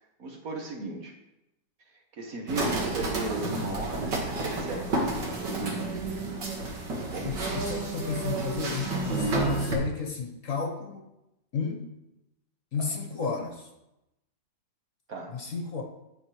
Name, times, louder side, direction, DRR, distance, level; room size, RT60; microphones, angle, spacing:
voice 1, 0.2-1.1 2.1-5.5 7.0-7.4 12.7-12.9 15.1-15.4, right 2 dB, 55° right, 2 dB, 1.5 m, -37 dB
sound 1, 2.5-9.8, right 2 dB, 70° right, 2.3 m, -30 dB
voice 2, 7.2-11.1 11.5-11.9 12.7-13.7 15.3-15.8, left 5 dB, 50° left, 3 dB, 1.3 m, -33 dB
15.5 x 6.1 x 3.2 m, 0.89 s
omnidirectional pair, 2.0 m